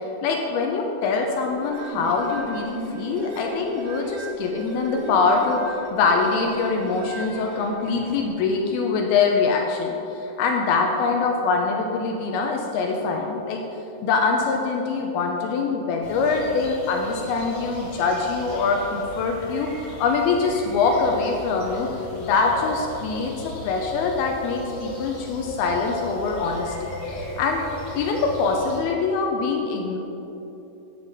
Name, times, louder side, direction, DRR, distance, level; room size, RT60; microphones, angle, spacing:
voice 1, 0.2-13.6 14.0-27.6 27.9-30.0, left 4 dB, 80° left, 2 dB, 2.4 m, -24 dB
sound 1, 1.5-8.3, right 1 dB, 90° right, 3.5 m, -36 dB
sound 2, 16.0-28.8, left 1 dB, 40° left, 2.7 m, -36 dB
9.7 x 7.1 x 5.2 m, 3.0 s
omnidirectional pair, 4.9 m